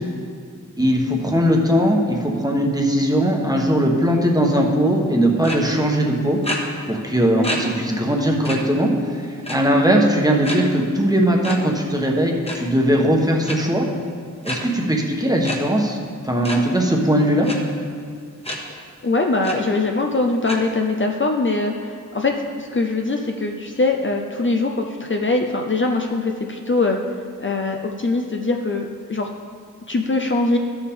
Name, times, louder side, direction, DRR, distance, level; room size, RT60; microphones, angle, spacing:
voice 1, 0.8-6.4 6.9-13.9 14.4-16.0 16.2-17.5, equal, 10° right, 0 dB, 1.2 m, -19 dB
sound 1, 5.4-5.6 6.4-6.6 7.4-7.6 8.0-8.1 8.4-8.6 9.4-9.8 10.4-10.6 11.4-11.6 12.3-12.6 13.4-13.6 14.4-14.6 15.4-15.6 16.4-16.6 17.4-17.6 18.4-18.6 19.0-19.1 19.4-19.5 20.4-20.6, left 1 dB, 20° left, 1.2 m, -27 dB
voice 2, 19.0-27.0 27.4-29.3 29.9-30.6, left 3 dB, 40° left, 2 dB, 0.6 m, -22 dB
12.0 x 7.0 x 3.6 m, 2.1 s
wide cardioid pair, 70°, 32 cm